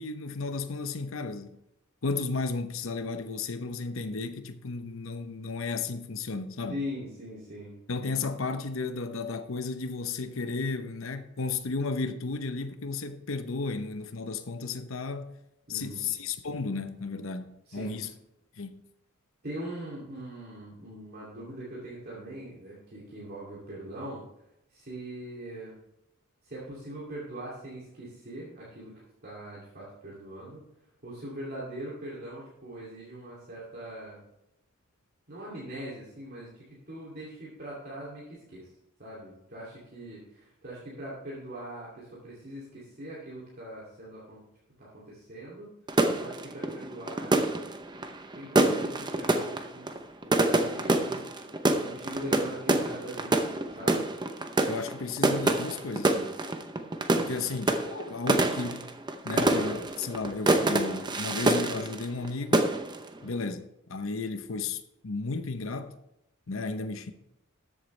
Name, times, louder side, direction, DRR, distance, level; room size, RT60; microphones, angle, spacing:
voice 1, 0.0-1.6 2.0-6.8 7.9-15.4 15.7-18.1 18.6-18.8 54.7-56.4 57.2-58.9 59.2-62.7 63.2-65.9 66.5-67.1, left 4 dB, 65° left, 0.8 m, -34 dB
voice 2, 6.7-7.8 15.7-16.1 17.7-18.0 19.4-24.2 24.7-25.8 26.4-28.9 29.2-30.6 31.0-34.2 35.3-38.7 39.0-44.4 44.8-45.7 46.1-47.7 48.3-49.9 50.2-51.2 51.8-53.5 53.8-54.0 57.2-57.5, right 1 dB, 45° right, 2.6 m, -41 dB
sound 1, 45.9-62.3 62.5-63.1, right 2 dB, 20° right, 0.7 m, -27 dB
13.5 x 8.1 x 3.3 m
head